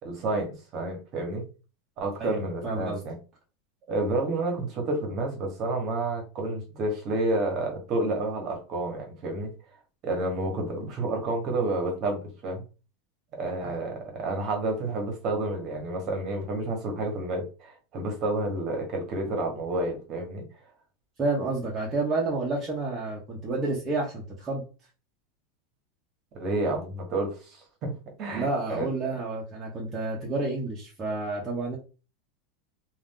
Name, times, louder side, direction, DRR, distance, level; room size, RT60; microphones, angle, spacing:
voice 1, 0.0-1.4 2.0-3.2 3.9-9.5 10.0-12.6 13.4-20.4 26.3-27.9 28.2-28.9, right 2 dB, 35° right, 2 dB, 1.0 m, -30 dB
voice 2, 2.2-3.0 13.6-13.7 21.2-24.6 28.3-31.8, right 3 dB, 15° right, -4 dB, 0.7 m, -30 dB
2.5 x 2.3 x 3.6 m, 0.33 s
supercardioid pair, 155°, 0 cm